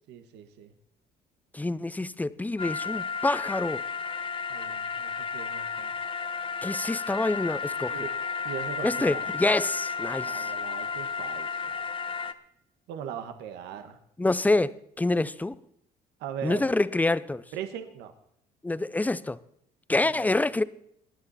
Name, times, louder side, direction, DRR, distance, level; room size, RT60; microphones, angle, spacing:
voice 1, 0.1-0.7 4.5-5.9 7.9-8.2 8.4-9.2 10.2-11.6 12.9-14.0 16.2-16.7 17.5-18.1 20.0-20.3, right 8 dB, 90° right, 1.4 m, -39 dB
voice 2, 1.5-3.8 6.6-8.0 8.8-10.5 14.2-15.5 16.4-17.4 18.6-19.4 19.9-20.6, left 2 dB, 10° left, 0.6 m, -26 dB
sound 1, 2.6-12.3, left 5 dB, 30° left, 1.0 m, -33 dB
26.0 x 10.5 x 4.2 m
cardioid pair, 110°, 17 cm